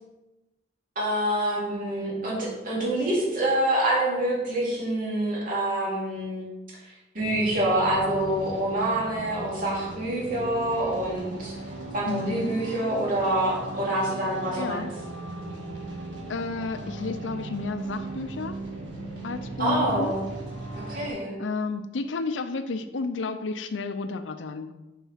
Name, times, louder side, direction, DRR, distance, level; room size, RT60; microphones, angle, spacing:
voice 1, 1.0-6.5 6.8-11.5 11.9-14.9 19.6-20.2 20.9-21.4, right 1 dB, 50° right, -5 dB, 2.5 m, -26 dB
sound 1, 7.2-21.1, right 2 dB, 90° right, 2.1 m, -37 dB
voice 2, 12.1-12.5 14.6-14.9 16.3-18.6 19.2-20.2 21.4-24.7, left 3 dB, 90° left, 9 dB, 0.5 m, -31 dB
7.2 x 4.6 x 5.6 m, 1.0 s
head